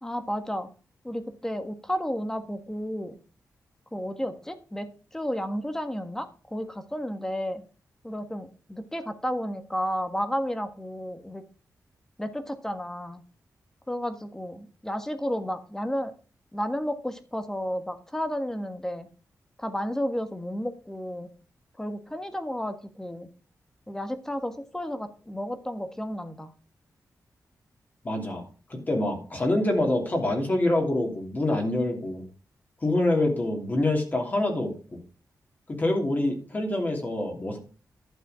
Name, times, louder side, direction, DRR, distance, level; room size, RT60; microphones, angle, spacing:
voice 1, 0.0-0.7 1.0-3.2 3.9-7.6 8.0-11.4 12.2-13.2 13.9-16.1 16.5-19.1 19.6-21.3 21.8-23.3 23.9-26.5, equal, 10° left, 8 dB, 1.5 m, -32 dB
voice 2, 28.0-28.4 28.7-32.2 32.8-34.7 35.7-37.6, left 1 dB, 30° left, 2 dB, 3.0 m, -26 dB
11.5 x 6.9 x 5.0 m, 0.37 s
wide cardioid pair, 150°, 6 cm